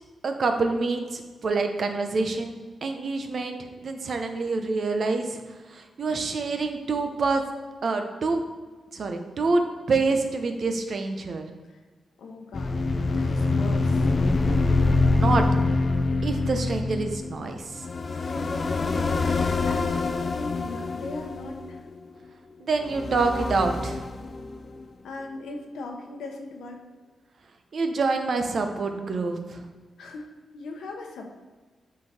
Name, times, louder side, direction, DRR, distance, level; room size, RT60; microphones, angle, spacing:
voice 1, 0.2-2.5 2.8-5.4 5.7-7.4 7.8-8.4 8.9-11.5 14.8-15.4 16.2-17.9 22.6-24.0 27.7-29.6, right 3 dB, 60° right, 5 dB, 0.8 m, -27 dB
voice 2, 12.2-12.8 13.1-14.1 18.2-18.6 19.2-21.8 25.0-26.8 30.0-31.3, left 2 dB, 80° left, 2 dB, 0.9 m, -39 dB
sound 1, 12.5-22.1 22.8-24.8, left 3 dB, 45° left, 0.5 m, -25 dB
7.4 x 4.0 x 4.3 m, 1.3 s
supercardioid pair, 50°, 0 cm